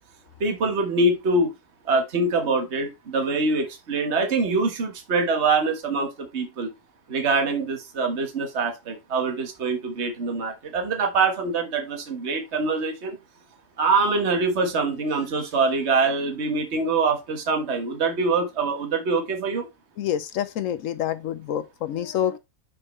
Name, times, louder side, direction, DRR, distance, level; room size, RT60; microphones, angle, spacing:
voice 1, 0.4-1.5 1.8-6.7 7.1-13.2 13.8-19.7, right 3 dB, 45° right, 1.6 m, -24 dB
voice 2, 20.0-22.4, left 10 dB, 65° left, 0.9 m, -27 dB
6.3 x 4.6 x 4.2 m
omnidirectional pair, 1.7 m